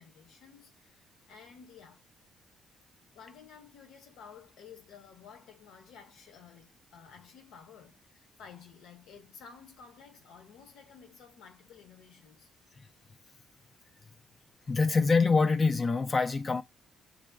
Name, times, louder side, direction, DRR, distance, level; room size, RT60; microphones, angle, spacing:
voice 1, 0.0-2.0 3.1-12.5, left 6 dB, 85° left, 0.7 m, -53 dB
voice 2, 14.7-16.6, left 4 dB, 35° left, 0.4 m, -25 dB
6.0 x 2.0 x 2.3 m
cardioid pair, 90°, 0 cm